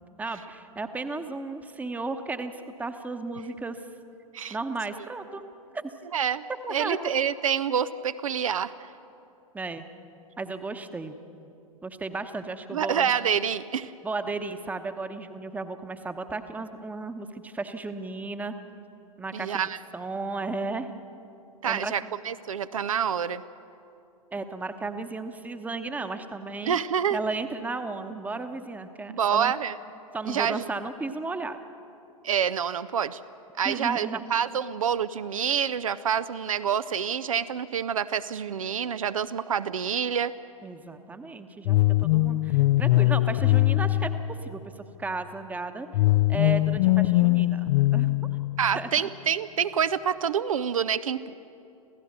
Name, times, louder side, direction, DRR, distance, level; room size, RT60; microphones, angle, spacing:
voice 1, 0.2-2.5 2.8-3.8 4.5-5.5 5.7-5.9 6.6-7.1 9.5-9.8 10.4-11.2 11.8-13.1 14.0-18.6 19.2-19.6 19.9-20.9 21.6-21.9 24.3-26.8 27.1-29.5 30.1-31.6 33.6-34.3 40.6-44.1 44.4-45.9 46.3-48.2 48.7-49.1, right 3 dB, 10° right, 9 dB, 1.0 m, -34 dB
voice 2, 6.1-6.4 6.7-8.7 12.7-13.9 19.3-19.8 21.6-23.4 26.6-27.2 29.1-29.7 30.3-30.6 32.2-33.2 33.6-40.3 48.6-51.3, right 8 dB, 70° right, 13 dB, 0.6 m, -27 dB
sound 1, 41.7-44.8 45.9-48.9, left 17 dB, 45° left, 0.5 m, -22 dB
27.0 x 16.0 x 6.7 m, 2.8 s
figure-of-eight pair, 100°, 18 cm